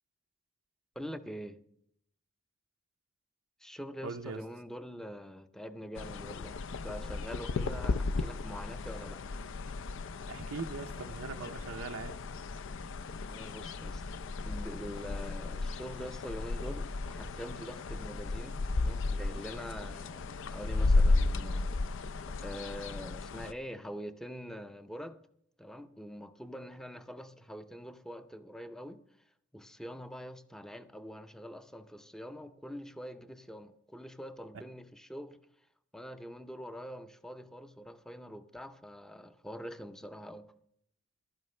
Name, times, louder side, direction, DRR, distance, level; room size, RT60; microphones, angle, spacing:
voice 1, 1.0-1.6 3.6-9.2 13.2-14.0 14.4-22.0 22.4-25.2 25.6-29.0 29.5-35.4 35.9-40.5, equal, 5° left, 0.6 m, -44 dB
voice 2, 4.0-4.4 10.3-12.1, right 4 dB, 90° right, 0.6 m, -40 dB
sound 1, 6.0-23.5, left 3 dB, 65° left, 0.5 m, -34 dB
14.5 x 12.0 x 3.3 m
head